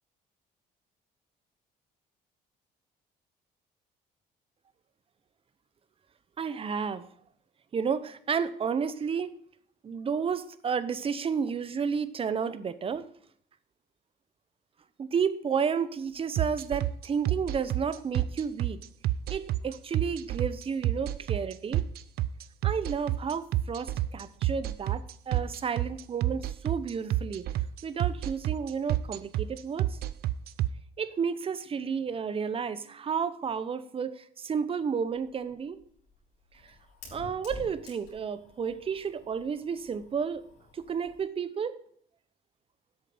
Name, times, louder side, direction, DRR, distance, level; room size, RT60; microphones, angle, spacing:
voice 1, 6.4-7.1 7.7-9.3 9.8-13.1 15.0-18.8 19.3-21.9 22.6-27.5 27.8-30.0 31.0-35.8 36.6-36.7 37.1-40.4 40.7-41.8, right 6 dB, 35° right, 14 dB, 0.8 m, -31 dB
sound 1, 16.4-30.7, right 14 dB, 65° right, 0.5 m, -28 dB
Fire, 35.0-41.3, left 2 dB, 80° left, 3.8 m, -50 dB
8.2 x 6.6 x 7.9 m, 0.64 s
cardioid pair, 110°, 17 cm